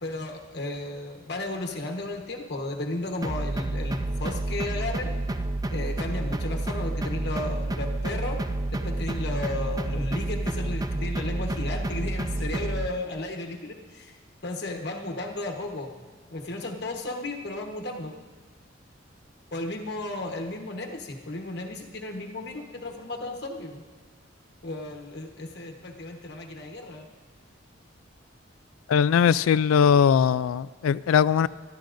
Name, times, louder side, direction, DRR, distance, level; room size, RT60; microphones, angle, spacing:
voice 1, 0.0-5.1 5.7-8.4 8.7-14.1 14.4-16.0 16.3-18.1 19.5-23.8 24.6-27.1, left 2 dB, 55° left, 2 dB, 1.1 m, -34 dB
sound 1, 3.2-12.9, right 2 dB, 20° right, 0.4 m, -29 dB
voice 2, 28.9-31.5, left 7 dB, 90° left, 18 dB, 0.3 m, -20 dB
24.5 x 13.0 x 2.6 m, 1.4 s
head